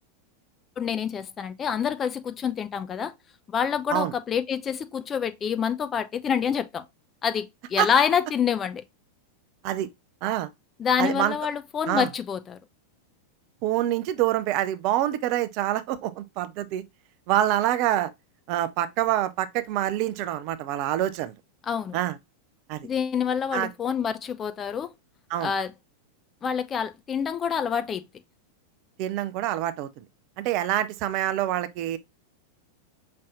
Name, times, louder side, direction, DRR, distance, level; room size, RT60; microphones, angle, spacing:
voice 1, 0.8-3.1 3.5-6.8 7.2-8.8 10.8-12.6 21.7-22.0 22.8-24.9 25.4-25.7 26.4-28.0, left 7 dB, 25° left, 0.5 m, -27 dB
voice 2, 11.0-11.3 11.9-12.1 13.6-16.8 17.3-18.1 18.5-21.3 21.9-22.2 22.7-22.9 23.5-23.7 25.3-25.5 29.0-30.0 30.4-32.0, right 13 dB, 45° right, 0.5 m, -26 dB
5.4 x 3.2 x 2.5 m
figure-of-eight pair, 90°, 0 cm